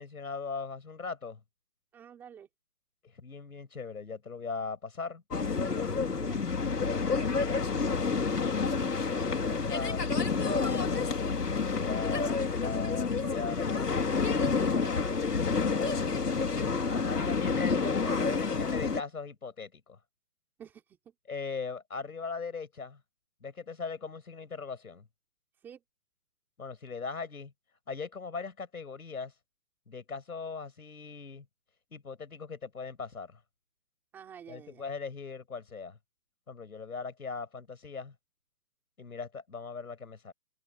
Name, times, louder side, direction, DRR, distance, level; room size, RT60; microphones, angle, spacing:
voice 1, 0.0-1.4 3.2-5.2 8.2-10.0 11.8-14.1 16.8-20.0 21.3-23.0 23.4-25.0 26.6-27.5 27.9-29.3 29.9-31.4 31.9-33.4 34.5-36.0 36.5-38.1 39.0-40.3, left 5 dB, 65° left, 6.5 m, -39 dB
voice 2, 1.9-2.5 6.2-6.4 15.0-15.3 16.8-17.6 20.6-21.0 25.6-25.8 34.1-34.8, right 8 dB, 5° right, 3.5 m, -50 dB
sound 1, 5.3-19.0, left 4 dB, 90° left, 4.2 m, -29 dB
hypercardioid pair, 175°, 46 cm